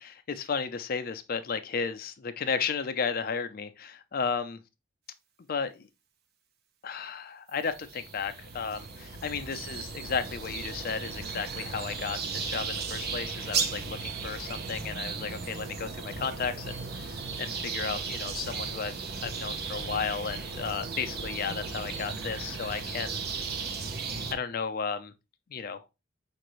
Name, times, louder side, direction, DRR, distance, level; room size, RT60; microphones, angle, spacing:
voice 1, 0.0-4.6 5.5-5.9 6.8-23.2 24.3-25.1 25.5-25.8, left 5 dB, 50° left, 0.5 m, -34 dB
sound 1, 7.6-24.3, right 5 dB, 55° right, 0.6 m, -36 dB
5.7 x 2.6 x 3.0 m
head